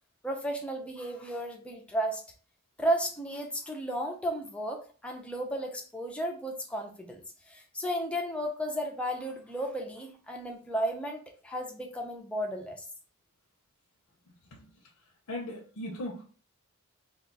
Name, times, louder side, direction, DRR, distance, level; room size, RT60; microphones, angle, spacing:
voice 1, 0.2-2.2 2.8-7.2 7.5-12.9, right 1 dB, 5° left, 2 dB, 0.4 m, -33 dB
voice 2, 15.3-16.2, left 1 dB, 80° left, -1 dB, 0.7 m, -37 dB
2.3 x 2.2 x 3.8 m, 0.40 s
head